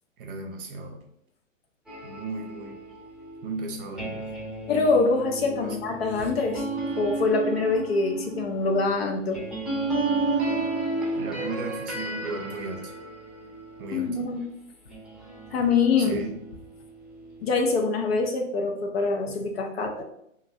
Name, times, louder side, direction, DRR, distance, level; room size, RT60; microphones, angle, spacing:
voice 1, 0.2-1.0 2.0-2.8 3.4-4.4 5.5-5.8 11.1-12.9 13.8-14.2 16.0-16.4, right 3 dB, 45° right, 3 dB, 0.7 m, -35 dB
sound 1, 1.9-14.4 14.9-17.8, right 2 dB, ahead, 0.9 m, -33 dB
voice 2, 4.7-6.7 7.0-9.4 13.9-14.5 15.5-16.2 17.4-20.0, left 4 dB, 50° left, 3 dB, 0.6 m, -24 dB
2.9 x 2.6 x 2.6 m, 0.75 s
figure-of-eight pair, 120°, 39 cm